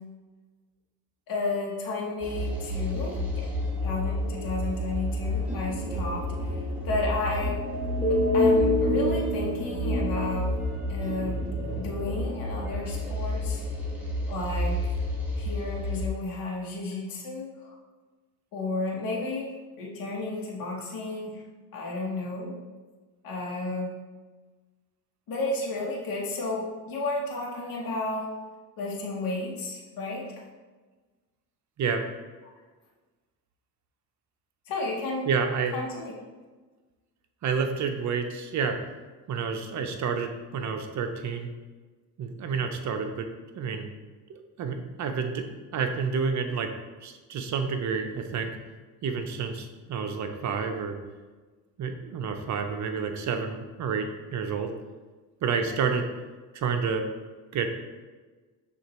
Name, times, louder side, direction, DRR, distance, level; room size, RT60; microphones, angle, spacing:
voice 1, 1.3-3.5 3.8-6.6 6.8-7.6 8.1-10.6 10.9-11.4 11.7-13.6 14.3-14.8 15.4-17.7 18.5-19.5 19.8-21.4 21.7-22.5 23.2-23.9 25.3-28.3 28.8-30.2 34.7-35.3 35.7-36.2, left 2 dB, 55° left, -2 dB, 1.1 m, -32 dB
sound 1, 2.2-16.1, left 1 dB, 5° right, 1.1 m, -28 dB
voice 2, 35.3-35.7 37.4-38.8 39.3-41.5 42.2-43.3 43.5-43.9 44.3-45.5 45.7-46.7 47.0-48.5 49.0-51.0 51.8-54.7 55.4-56.1 56.5-57.1 57.5-57.7, right 5 dB, 45° right, 6 dB, 0.6 m, -29 dB
6.3 x 2.6 x 3.0 m, 1.3 s
supercardioid pair, 75°, 41 cm